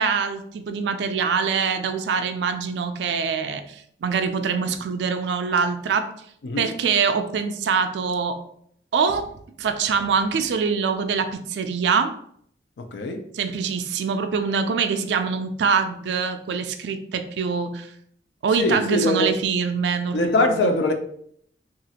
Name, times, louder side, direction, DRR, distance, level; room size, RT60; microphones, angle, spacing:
voice 1, 0.0-6.1 6.6-8.4 8.9-12.1 13.3-17.9 18.4-20.7, right 5 dB, 75° right, 0.3 m, -24 dB
voice 2, 12.9-13.2 18.5-19.3 20.1-20.9, left 2 dB, 75° left, 0.4 m, -22 dB
2.9 x 2.4 x 2.8 m
head